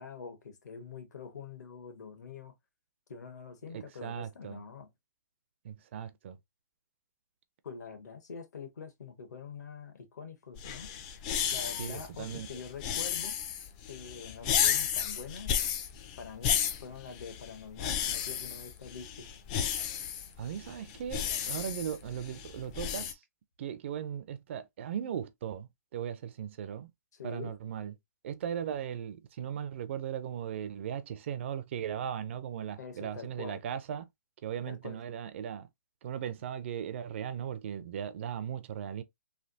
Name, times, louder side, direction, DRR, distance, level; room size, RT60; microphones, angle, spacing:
voice 1, 0.0-2.5 3.1-4.9 7.6-10.9 11.5-13.4 13.9-15.5 16.2-19.3 27.1-27.5 32.8-33.6 34.7-35.0, left 5 dB, 70° left, 1.2 m, -45 dB
voice 2, 3.7-4.6 5.6-6.4 11.8-12.5 20.4-23.2 23.6-26.9 27.2-27.9 28.2-34.1 34.4-35.7 36.0-39.0, right 9 dB, 40° right, 0.4 m, -38 dB
sound 1, 10.6-23.1, left 9 dB, 25° left, 0.4 m, -33 dB
3.3 x 2.3 x 2.7 m
hypercardioid pair, 155°, 10 cm